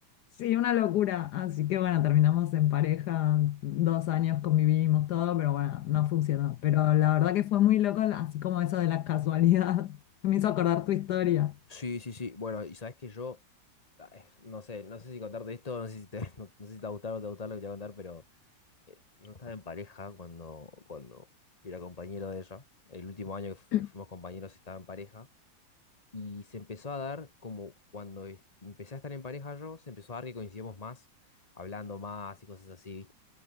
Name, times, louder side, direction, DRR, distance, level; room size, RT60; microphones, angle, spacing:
voice 1, 0.4-10.0 10.2-11.5 23.7-23.9, left 13 dB, 70° left, 1.2 m, -26 dB
voice 2, 11.7-13.4 14.0-18.2 18.9-21.3 21.6-23.7 23.9-25.3 26.1-31.0 31.6-33.1, left 4 dB, 20° left, 1.7 m, -41 dB
omnidirectional pair, 1.9 m